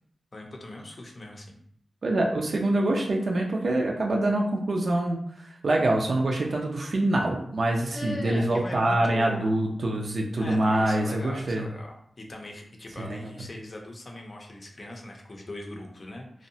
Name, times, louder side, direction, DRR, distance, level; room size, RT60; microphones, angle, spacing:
voice 1, 0.3-1.6 7.8-9.5 10.0-10.1 10.4-16.5, left 1 dB, 45° left, 1 dB, 0.5 m, -40 dB
voice 2, 2.0-11.7 13.0-13.2, right 1 dB, 65° right, 0 dB, 0.4 m, -25 dB
2.7 x 2.0 x 2.7 m, 0.68 s
cardioid pair, 70°, 0 cm